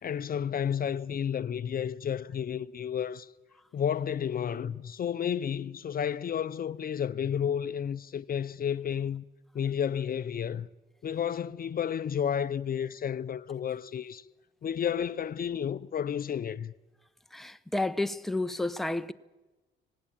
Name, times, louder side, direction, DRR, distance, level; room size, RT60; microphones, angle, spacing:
voice 1, 0.0-3.3 3.7-9.2 9.5-10.7 11.0-14.2 14.6-16.7, left 8 dB, 50° left, 0.7 m, -31 dB
voice 2, 17.3-19.1, left 2 dB, ahead, 0.8 m, -31 dB
18.5 x 17.5 x 8.7 m
cardioid pair, 90°, 20 cm